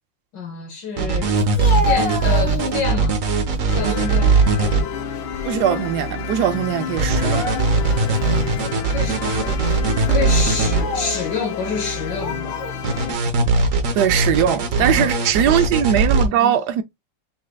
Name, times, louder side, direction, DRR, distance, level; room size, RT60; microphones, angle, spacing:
voice 1, 0.3-1.5 1.9-3.2 3.7-4.4 8.9-9.6 10.1-12.8 14.8-15.1 15.5-15.6 16.2-16.5, left 5 dB, 65° left, 1.6 m, -28 dB
sound 1, 1.0-4.8 7.0-10.8 12.8-16.3, right 4 dB, 50° right, 1.1 m, -19 dB
Speech, 1.4-3.0 3.5-4.1 4.5-5.8 6.0-6.2 7.0-8.0 8.6-8.7 9.5-9.7 10.5-11.2 12.1-12.8, left 2 dB, 40° left, 1.9 m, -29 dB
sound 2, 3.7-13.1, left 5 dB, 85° left, 1.4 m, -29 dB
voice 2, 5.4-7.5 13.6-13.7 13.9-16.8, right 10 dB, 75° right, 1.0 m, -20 dB
5.9 x 3.2 x 2.2 m
omnidirectional pair, 2.1 m